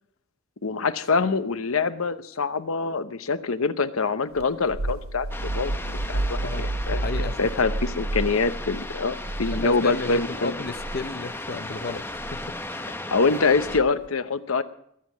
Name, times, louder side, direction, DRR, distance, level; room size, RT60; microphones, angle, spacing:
voice 1, 0.6-7.0 7.4-10.5 13.1-14.6, left 4 dB, 85° left, 12 dB, 0.9 m, -25 dB
sound 1, 4.4-10.2 10.7-11.0 12.2-12.5 13.7-14.1, right 2 dB, 90° right, 0.9 m, -30 dB
sound 2, 5.3-13.8, left 2 dB, 10° left, 0.8 m, -36 dB
voice 2, 6.4-7.6 9.6-12.6, left 3 dB, 45° left, 11 dB, 0.6 m, -33 dB
20.5 x 7.6 x 7.2 m, 0.70 s
head